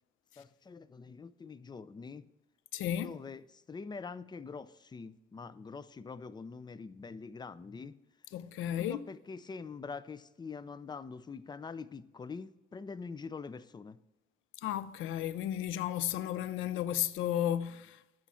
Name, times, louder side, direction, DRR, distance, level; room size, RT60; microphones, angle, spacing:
voice 1, 0.4-2.3 3.0-3.4 3.7-8.0 8.8-14.0, left 5 dB, 20° left, 0.4 m, -44 dB
voice 2, 2.7-3.2 8.3-9.1 14.6-18.0, left 11 dB, 85° left, 0.5 m, -33 dB
8.5 x 4.5 x 5.5 m
cardioid pair, 90°, 20 cm